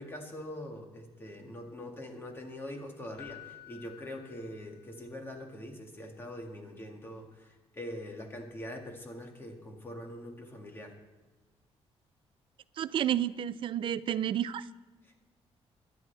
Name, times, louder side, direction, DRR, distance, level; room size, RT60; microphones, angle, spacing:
voice 1, 0.0-11.0, left 1 dB, 20° left, 2 dB, 2.0 m, -43 dB
Keyboard (musical), 3.2-5.1 8.4-8.5, left 14 dB, 85° left, 0.7 m, -52 dB
voice 2, 12.8-14.7, right 10 dB, 55° right, 15 dB, 0.4 m, -30 dB
22.5 x 10.5 x 3.4 m, 1.2 s
cardioid pair, 175°, 11 cm